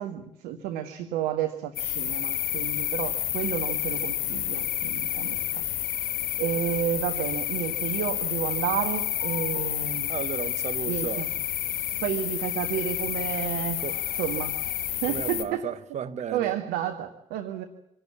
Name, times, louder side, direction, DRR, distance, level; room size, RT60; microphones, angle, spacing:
voice 1, 0.0-5.6 6.4-10.1 10.9-11.3 12.0-13.8 14.1-14.6 15.0-15.7 16.3-17.6, right 11 dB, 60° right, 1.6 m, -31 dB
sound 1, 1.8-15.4, left 12 dB, 60° left, 1.7 m, -30 dB
voice 2, 10.1-11.3 13.8-14.0 15.1-16.5, right 8 dB, 45° right, 1.2 m, -34 dB
26.5 x 17.0 x 8.3 m
figure-of-eight pair, 45°, 17 cm